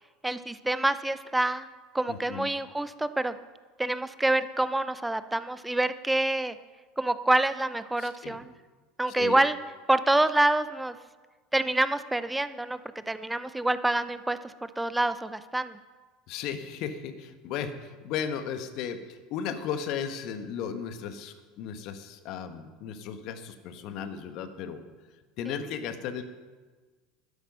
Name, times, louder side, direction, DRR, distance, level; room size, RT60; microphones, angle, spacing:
voice 1, 0.2-1.7 1.9-3.3 3.8-6.6 7.0-8.5 9.0-9.6 9.9-11.0 11.5-12.8 13.1-15.8, right 2 dB, 10° right, 13 dB, 0.7 m, -27 dB
voice 2, 2.1-2.5 8.0-8.4 9.2-9.4 16.3-24.8 25.4-26.2, left 7 dB, 55° left, 9 dB, 1.3 m, -35 dB
12.5 x 10.5 x 5.6 m, 1.4 s
hypercardioid pair, 75°, 0 cm